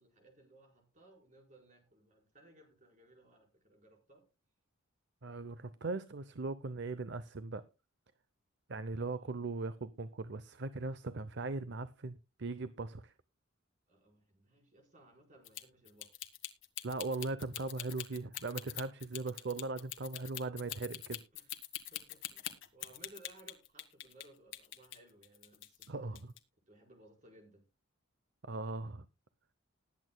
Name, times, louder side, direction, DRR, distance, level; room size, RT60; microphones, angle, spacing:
voice 1, 0.0-4.3 8.9-9.3 13.9-16.1 21.3-26.2 26.7-27.6, right 1 dB, 35° right, 4.7 m, -61 dB
voice 2, 5.2-7.6 8.7-13.1 16.8-21.2 25.9-26.2 28.4-29.1, right 3 dB, 55° right, 0.6 m, -39 dB
sound 1, 15.4-24.3 24.5-25.9 26.2-26.4, left 13 dB, 60° left, 1.6 m, -43 dB
20.0 x 8.5 x 2.2 m
head